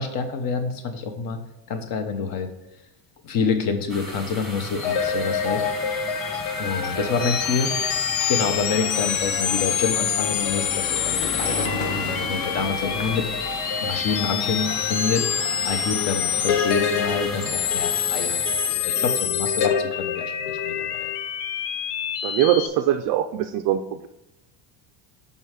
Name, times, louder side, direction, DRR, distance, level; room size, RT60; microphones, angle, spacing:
voice 1, 0.0-1.4 1.7-2.5 3.2-5.6 6.6-7.7 8.3-13.3 13.8-15.2 15.6-21.1, left 5 dB, 50° left, 7 dB, 1.1 m, -27 dB
sound 1, 3.9-19.6, right 1 dB, ahead, 1.2 m, -37 dB
sound 2, 4.8-22.7, left 8 dB, 80° left, 0.9 m, -26 dB
voice 2, 7.0-7.3 22.2-24.1, right 11 dB, 50° right, 5 dB, 0.4 m, -23 dB
sound 3, 8.2-16.7 17.5-17.6 17.8-17.9 18.2-18.3, left 2 dB, 15° left, 0.7 m, -36 dB
5.5 x 5.5 x 6.4 m, 0.87 s
cardioid pair, 170°, 45 cm